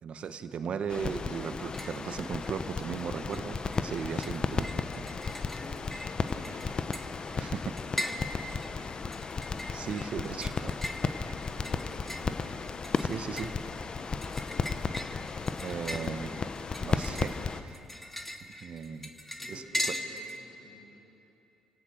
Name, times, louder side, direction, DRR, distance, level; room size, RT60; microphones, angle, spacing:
voice 1, 0.0-4.7 5.2-5.4 7.4-7.6 9.7-10.7 13.0-13.5 15.6-16.4 16.8-17.8 18.6-19.1 19.5-19.6, right 6 dB, 55° right, 10 dB, 1.3 m, -37 dB
sound 1, 0.9-17.6, left 4 dB, 40° left, 1.0 m, -34 dB
sound 2, 1.5-2.0 2.3-3.0 3.3-20.4, left 1 dB, 10° left, 2.1 m, -40 dB
sound 3, 3.5-4.5 5.9-6.9 8.5-8.7, right 4 dB, 85° right, 2.3 m, -59 dB
voice 2, 5.5-8.9 11.5-12.7 19.3-21.0, left 1 dB, 80° left, -11 dB, 7.6 m, -53 dB
28.5 x 17.5 x 6.5 m, 2.9 s
hypercardioid pair, 45°, 2 cm